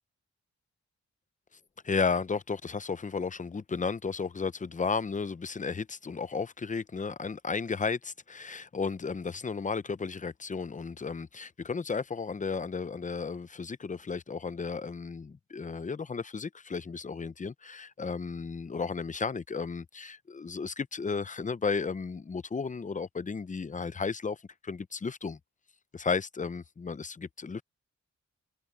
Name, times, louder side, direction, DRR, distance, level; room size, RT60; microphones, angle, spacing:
voice 1, 1.8-24.4 24.6-25.4 25.9-27.6, left 5 dB, 25° left, 0.6 m, -34 dB
wide cardioid pair, 115°, 29 cm